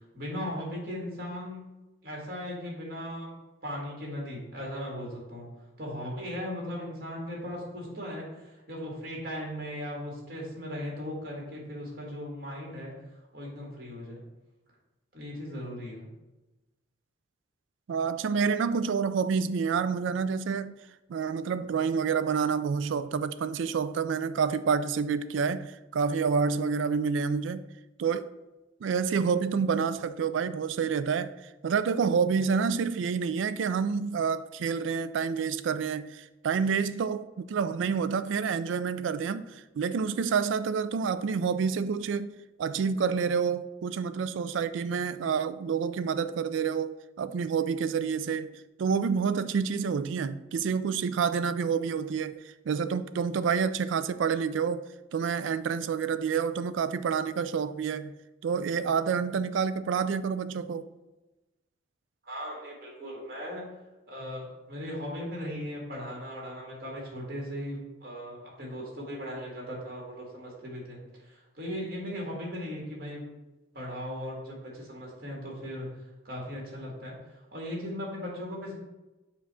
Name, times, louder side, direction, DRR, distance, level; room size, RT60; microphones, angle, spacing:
voice 1, 0.1-1.6 2.0-3.4 3.6-5.5 5.8-12.9 13.3-14.2 15.1-16.1 62.2-63.6 64.1-73.3 73.7-75.9 76.2-78.7, equal, 50° right, 2.0 m, -38 dB
voice 2, 17.9-20.8 21.1-27.6 28.0-28.3 28.8-31.3 31.6-42.3 42.6-52.4 52.7-54.9 55.1-58.1 58.4-60.9, right 6 dB, 80° right, 0.3 m, -28 dB
7.1 x 2.5 x 5.6 m
head